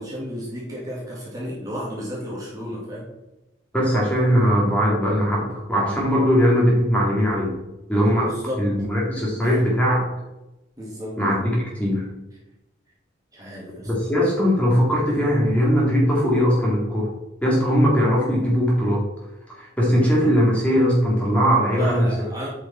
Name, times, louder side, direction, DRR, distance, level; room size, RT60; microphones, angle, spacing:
voice 1, 0.0-3.1 8.2-8.7 9.4-9.7 10.8-11.2 13.3-13.9 21.7-22.5, equal, 20° right, -5 dB, 2.2 m, -33 dB
voice 2, 3.7-7.5 7.9-8.3 8.6-10.0 11.2-12.1 13.9-17.1 17.4-19.0 19.5-22.1, equal, 5° left, -5 dB, 2.2 m, -20 dB
9.0 x 5.3 x 4.3 m, 0.97 s
head